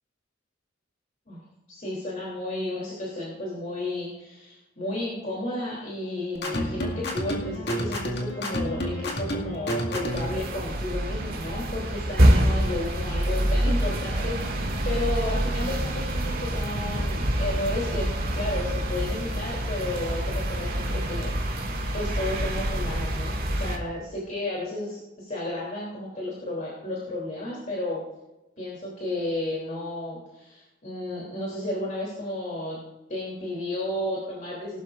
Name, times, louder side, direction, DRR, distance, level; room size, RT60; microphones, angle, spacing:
voice 1, 1.7-18.1 18.3-28.0 28.6-32.8 33.1-34.8, left 1 dB, 40° left, -5 dB, 3.3 m, -33 dB
sound 1, 6.3-10.4, equal, 55° left, 2.2 m, -30 dB
sound 2, 10.1-23.8, right 1 dB, 45° right, 2.2 m, -26 dB
20.0 x 12.0 x 2.6 m, 1.0 s
head